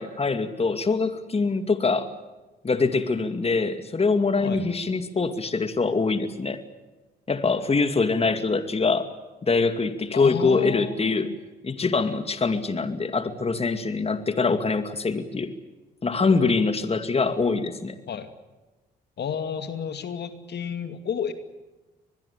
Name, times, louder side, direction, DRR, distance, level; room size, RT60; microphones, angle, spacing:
voice 1, 0.0-2.1 2.6-6.6 7.3-9.1 9.4-11.3 11.6-15.5 16.0-18.0, left 4 dB, 30° left, 9 dB, 2.4 m, -24 dB
voice 2, 10.1-11.4 18.1-18.3 19.2-21.3, left 7 dB, 55° left, 9 dB, 2.5 m, -31 dB
24.5 x 21.0 x 8.6 m, 1.1 s
supercardioid pair, 60°, 20 cm